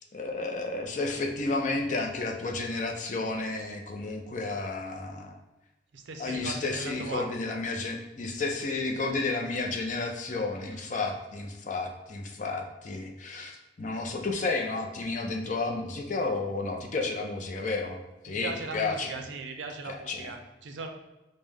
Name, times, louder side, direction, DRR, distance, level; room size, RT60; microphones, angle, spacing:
voice 1, 0.1-5.4 6.2-19.1 19.9-20.3, left 3 dB, 40° left, 2 dB, 0.5 m, -32 dB
voice 2, 5.9-7.2 18.3-20.9, right 3 dB, 80° right, 5 dB, 0.5 m, -38 dB
5.2 x 2.1 x 3.3 m, 1.0 s
head